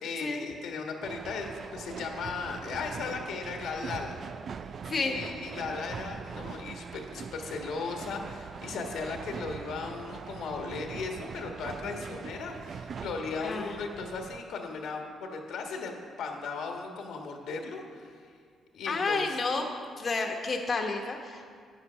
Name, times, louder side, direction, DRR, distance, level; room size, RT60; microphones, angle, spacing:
voice 1, 0.0-4.1 4.9-18.2 18.7-19.2, left 4 dB, 80° left, 2 dB, 1.5 m, -37 dB
sound 1, 1.0-14.4, right 6 dB, 50° right, 0.4 m, -42 dB
voice 2, 4.9-5.2 13.4-13.7 18.9-19.6 20.0-21.5, left 3 dB, 40° left, 1 dB, 1.1 m, -30 dB
9.8 x 8.4 x 5.7 m, 2.1 s
cardioid pair, 90°, 0 cm